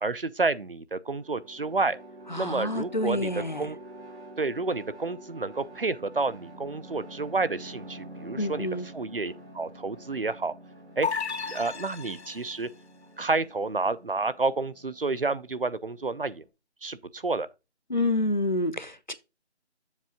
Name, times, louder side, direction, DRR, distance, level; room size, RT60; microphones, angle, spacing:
voice 1, 0.0-2.0 2.4-3.3 3.6-3.8 4.4-8.7 8.9-10.5 11.0-11.1 11.5-12.7 13.2-16.4 16.8-17.5, right 3 dB, 55° right, 0.6 m, -29 dB
sound 1, 1.0-16.5, right 1 dB, 70° right, 3.8 m, -47 dB
voice 2, 2.3-3.7 8.4-8.9 17.9-19.1, left 2 dB, 45° left, 0.6 m, -28 dB
sound 2, 11.0-12.7, left 5 dB, 70° left, 1.0 m, -33 dB
7.4 x 3.4 x 5.9 m
figure-of-eight pair, 180°, 34 cm